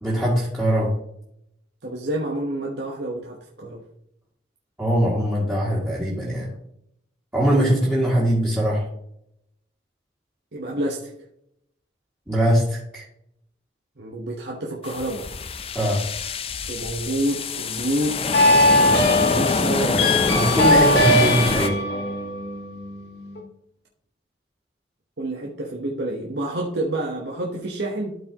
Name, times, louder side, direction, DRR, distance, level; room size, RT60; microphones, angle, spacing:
voice 1, 0.0-0.9 4.8-6.5 7.3-8.8 12.3-13.0 15.7-16.0 20.3-21.8, equal, 10° right, -7 dB, 2.2 m, -21 dB
voice 2, 1.8-3.8 10.5-11.1 14.0-15.3 16.7-18.2 19.1-20.1 25.2-28.2, right 1 dB, 60° right, -1 dB, 1.1 m, -28 dB
sound 1, 14.8-21.7, left 4 dB, 30° left, 0.5 m, -25 dB
sound 2, 18.3-23.4, left 1 dB, 70° left, 2.2 m, -20 dB
12.5 x 4.7 x 2.9 m, 0.74 s
head